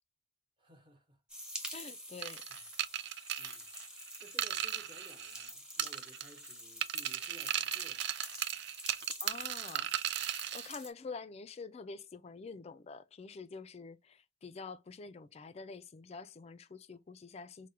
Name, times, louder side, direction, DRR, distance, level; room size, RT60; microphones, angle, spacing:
voice 1, 0.6-1.2 3.4-8.1, right 2 dB, 25° right, 1.0 m, -58 dB
sound 1, 1.3-10.9, equal, 5° right, 0.8 m, -47 dB
voice 2, 1.7-2.4 9.2-9.9 10.5-17.7, left 4 dB, 30° left, 0.3 m, -47 dB
sound 2, 2.2-5.5 5.8-6.5 6.8-10.7, right 12 dB, 60° right, 0.3 m, -37 dB
4.6 x 2.1 x 2.8 m
head